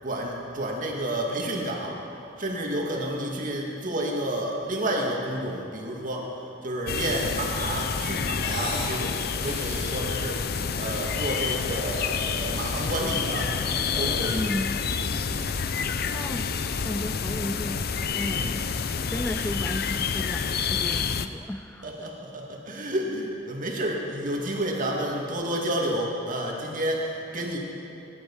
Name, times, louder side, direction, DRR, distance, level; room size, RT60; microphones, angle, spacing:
voice 1, 0.0-2.1 2.4-13.5 14.0-14.5 14.8-15.2 18.3-18.6 21.8-27.6, right 1 dB, 45° right, -1 dB, 2.2 m, -30 dB
sound 1, 6.9-21.3, left 6 dB, 55° left, 0.6 m, -28 dB
sound 2, 8.3-9.0 9.3-10.0 10.9-12.0 12.4-13.1 13.5-15.0, left 1 dB, 35° left, 2.5 m, -39 dB
voice 2, 14.3-14.8 16.1-16.5 16.8-22.1, left 1 dB, 10° left, 9 dB, 0.3 m, -34 dB
20.0 x 11.0 x 5.6 m, 2.8 s
head